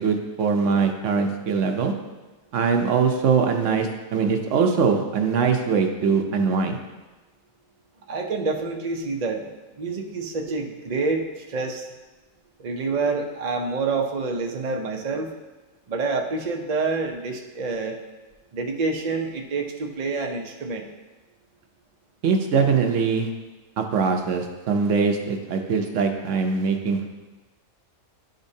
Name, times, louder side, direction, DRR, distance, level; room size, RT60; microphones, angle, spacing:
voice 1, 0.0-1.9 2.5-6.8 22.2-23.3 23.8-27.1, right 5 dB, 70° right, 4 dB, 1.0 m, -22 dB
voice 2, 8.1-9.5 9.8-11.9 12.6-15.3 15.9-18.0 18.5-20.9, right 3 dB, 45° right, 2 dB, 0.5 m, -27 dB
11.0 x 5.2 x 2.7 m, 1.2 s
omnidirectional pair, 1.4 m